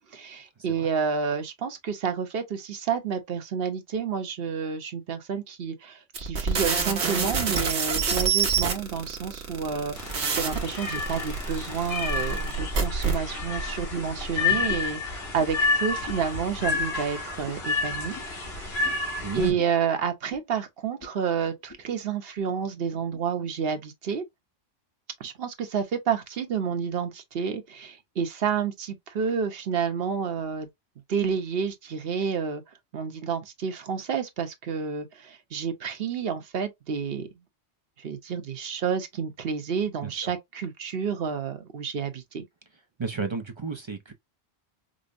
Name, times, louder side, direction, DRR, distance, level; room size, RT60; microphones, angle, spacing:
voice 1, 0.1-10.0 10.3-18.2 18.6-19.1 19.3-24.2 25.2-30.7 31.1-32.6 32.9-37.3 38.0-42.4, right 6 dB, 65° right, 1.0 m, -30 dB
sound 1, 6.1-13.2, right 5 dB, 90° right, 1.3 m, -26 dB
sound 2, 9.9-19.5, left 3 dB, 70° left, 1.7 m, -30 dB
sound 3, 13.9-14.2 14.6-15.0 15.4-15.5 16.0-16.3 16.7-16.9 17.4-17.7 18.1-18.3 18.8-19.0 19.6-19.8 20.3-20.5 21.0-21.2 21.5-21.8 22.4-22.5 23.1-23.2, left 2 dB, 25° left, 0.7 m, -43 dB
voice 2, 19.2-19.6 40.0-40.3 43.0-44.1, right 5 dB, 40° right, 0.4 m, -33 dB
5.1 x 2.1 x 2.5 m
omnidirectional pair, 1.1 m